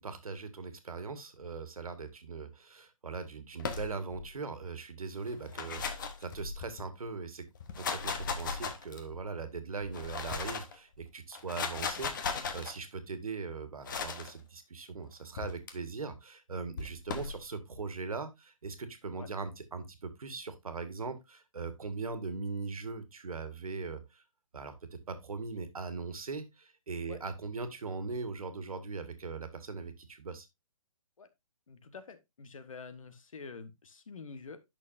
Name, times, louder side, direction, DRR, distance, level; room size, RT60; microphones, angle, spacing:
voice 1, 0.0-7.4 7.8-24.2 24.5-24.7 25.1-30.5, right 4 dB, 80° right, 1.7 m, -40 dB
sound 1, 3.6-4.3 5.3-6.8 7.5-9.2 9.8-10.7 11.3-12.7 13.8-14.3 15.4-15.7 16.8-17.4, left 5 dB, 35° left, 1.0 m, -37 dB
voice 2, 31.7-34.6, left 4 dB, 70° left, 1.3 m, -47 dB
9.2 x 6.2 x 2.6 m
hypercardioid pair, 165°, 18 cm